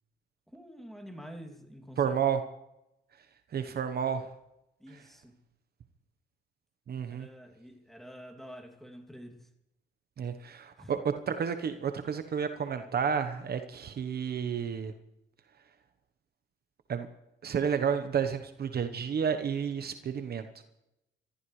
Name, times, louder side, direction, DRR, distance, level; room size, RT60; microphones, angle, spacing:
voice 1, 0.5-2.1 4.8-5.4 7.1-9.5 10.8-10.9, equal, ahead, 2.7 m, -48 dB
voice 2, 2.0-2.4 3.5-4.3 6.9-7.3 10.2-11.0 11.3-14.9 16.9-17.1 17.4-20.6, right 7 dB, 50° right, 1.1 m, -31 dB
25.5 x 14.0 x 3.3 m
cardioid pair, 90°, 20 cm